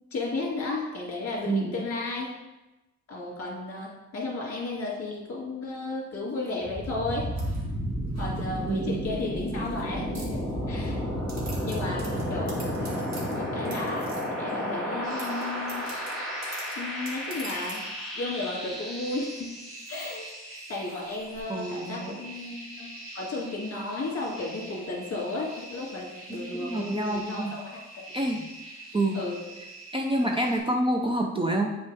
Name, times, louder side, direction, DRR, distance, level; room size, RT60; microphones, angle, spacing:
voice 1, 0.1-2.3 3.1-7.3 8.2-10.4 10.7-11.0 11.3-12.0 12.3-12.9 13.3-14.1 14.4-15.9 16.8-17.8 18.2-19.5 19.9-20.2 20.7-28.0 29.1-29.4, left 2 dB, 50° left, -3 dB, 2.3 m, -34 dB
voice 2, 1.5-1.8 8.7-9.1 21.5-22.2 26.3-27.6 28.1-28.5 28.9-29.2 29.9-31.8, right 1 dB, 20° right, 1 dB, 0.5 m, -27 dB
sound 1, 6.6-20.4, equal, ahead, 1.4 m, -32 dB
sound 2, 7.4-8.9 9.4-9.8 10.1-10.9 11.3-14.5 15.1-17.9, right 2 dB, 65° right, 1.6 m, -46 dB
sound 3, 15.0-30.6, right 1 dB, 45° right, 2.6 m, -45 dB
8.6 x 5.5 x 3.5 m, 1.0 s
wide cardioid pair, 180°, 30 cm